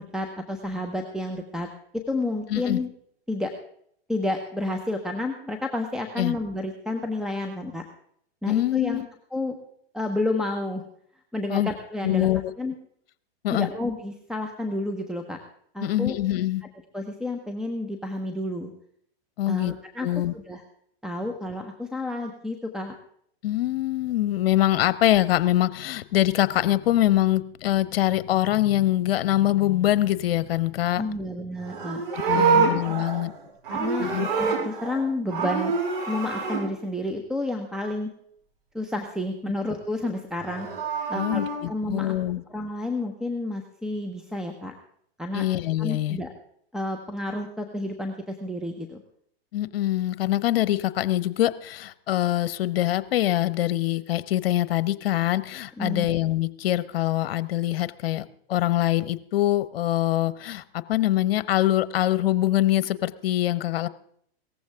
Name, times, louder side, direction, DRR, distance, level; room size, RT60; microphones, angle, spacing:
voice 1, 0.0-1.7 2.1-2.9 3.3-3.5 4.1-7.8 8.4-9.0 9.3-9.6 9.9-10.8 11.3-12.3 12.6-12.7 13.5-15.4 15.7-16.2 16.9-18.7 19.5-20.1 20.3-20.6 21.0-22.9 31.0-32.0 32.3-32.7 33.7-34.1 34.4-35.7 36.1-38.1 38.7-40.7 41.1-42.2 42.5-44.7 45.2-45.5 45.8-46.3 46.7-49.0 55.8-56.1, left 2 dB, ahead, 5 dB, 1.2 m, -30 dB
voice 2, 2.5-2.8 6.2-6.4 8.5-9.1 11.5-11.7 12.0-12.5 13.4-13.7 15.8-16.6 19.4-19.7 20.0-20.3 23.4-31.0 32.1-33.3 34.0-34.3 41.1-42.4 45.3-46.2 49.5-60.6 60.9-63.9, left 14 dB, 65° left, 16 dB, 1.0 m, -24 dB
Livestock farm animals working animals, 31.6-35.0 35.3-36.6 40.4-41.6, right 5 dB, 60° right, 6.0 m, -26 dB
18.0 x 14.5 x 3.6 m, 0.66 s
hypercardioid pair, 120°, 31 cm